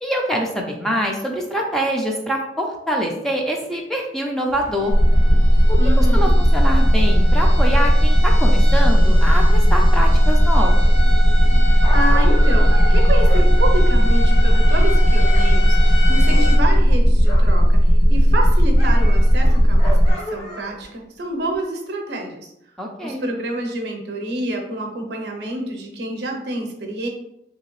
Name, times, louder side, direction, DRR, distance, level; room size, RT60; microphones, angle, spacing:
voice 1, 0.0-4.9 5.7-10.9 22.8-23.3, equal, ahead, -1 dB, 0.4 m, -25 dB
sound 1, 4.5-16.6, equal, 75° left, 1.1 m, -30 dB
sound 2, 4.9-20.1, equal, 90° left, 0.8 m, -14 dB
voice 2, 5.8-6.4 11.6-22.5 23.0-27.1, right 1 dB, 65° right, 3 dB, 0.6 m, -28 dB
Dog, 11.5-15.5 15.7-17.6 18.0-20.9 21.5-21.6, equal, 35° left, 0.9 m, -35 dB
3.0 x 2.8 x 3.0 m, 0.81 s
head